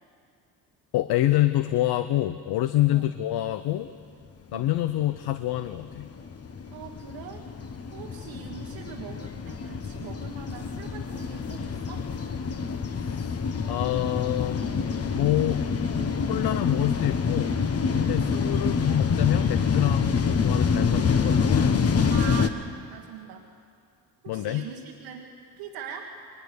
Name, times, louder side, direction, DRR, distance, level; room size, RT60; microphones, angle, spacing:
voice 1, 0.9-3.9 4.5-6.1 13.0-13.4 13.7-14.7 15.1-15.6 16.3-17.6 17.9-22.0 24.3-24.6, left 14 dB, 70° left, 11 dB, 0.8 m, -27 dB
sound 1, 4.8-22.5, left 5 dB, 35° left, 1.3 m, -26 dB
voice 2, 6.7-7.5 7.9-12.1 22.1-22.6 22.9-23.5 24.2-26.1, right 7 dB, 85° right, -1 dB, 1.6 m, -42 dB
21.5 x 20.0 x 6.7 m, 2.4 s
supercardioid pair, 65°, 40 cm